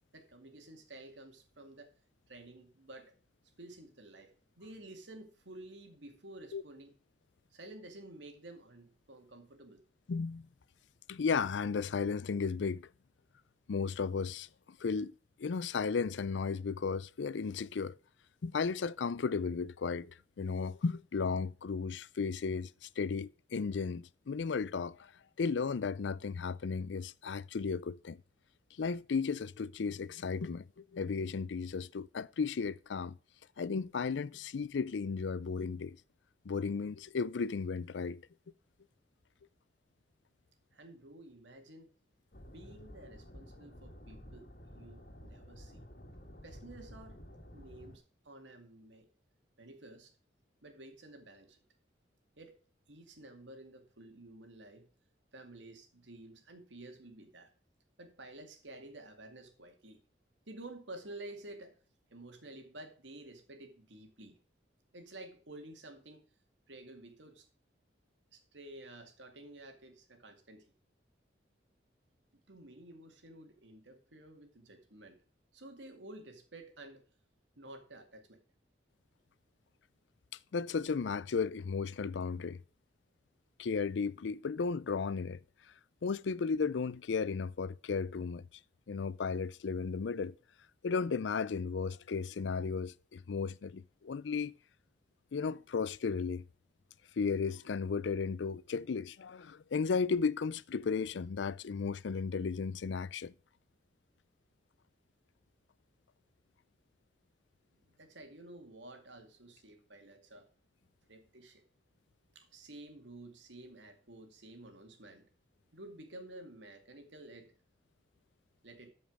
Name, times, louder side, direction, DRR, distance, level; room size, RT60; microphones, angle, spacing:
voice 1, 0.1-1.9 2.3-3.1 3.6-6.9 7.5-9.8 40.7-41.9 42.5-45.8 46.4-47.2 47.5-49.1 49.6-50.1 50.6-51.6 52.4-52.6 52.9-54.9 55.3-57.5 58.0-60.0 60.5-61.8 62.1-64.4 64.9-66.3 66.7-67.5 68.3-70.7 72.3-75.2 75.5-77.0 77.6-78.4 107.8-110.5 111.1-111.6 112.3-115.3 115.7-117.5 118.6-118.9, right 2 dB, 90° right, 2.2 m, -51 dB
voice 2, 10.1-10.5 11.1-12.9 13.7-14.5 14.8-15.1 15.4-17.9 18.4-25.1 25.4-28.2 28.8-33.2 33.6-36.0 36.5-38.2 80.5-82.6 83.6-85.4 86.0-88.5 88.9-90.3 90.8-94.5 95.3-96.4 97.2-103.3, left 5 dB, 85° left, 0.5 m, -34 dB
sound 1, 42.3-48.0, equal, 55° left, 2.0 m, -52 dB
13.0 x 5.4 x 4.9 m
head